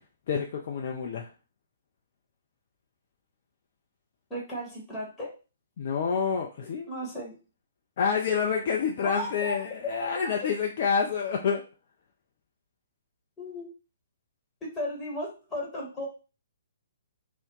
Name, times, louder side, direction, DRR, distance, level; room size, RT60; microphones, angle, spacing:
voice 1, 0.3-1.3 5.8-6.9 8.0-11.6, left 6 dB, 45° left, 1 dB, 0.4 m, -28 dB
voice 2, 4.3-5.3 6.9-7.4 9.0-10.1 13.4-13.7 14.7-16.1, left 1 dB, 10° left, -3 dB, 1.1 m, -35 dB
2.7 x 2.1 x 3.7 m, 0.33 s
figure-of-eight pair, 125°, 0 cm